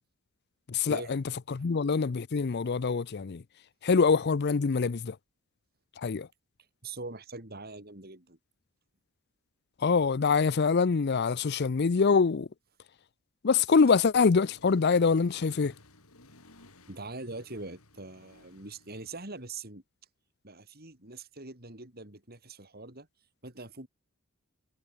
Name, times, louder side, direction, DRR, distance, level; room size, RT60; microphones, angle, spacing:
voice 1, 0.7-1.2 1.5-3.4 3.8-5.1 6.0-6.3 9.8-12.5 13.4-15.7, left 5 dB, 50° left, 0.5 m, -24 dB
voice 2, 6.8-8.4 16.9-19.8 20.4-23.1 23.4-23.9, right 3 dB, 45° right, 4.2 m, -43 dB
Accelerating revving vroom, 14.3-19.5, left 2 dB, 80° left, 5.0 m, -58 dB
head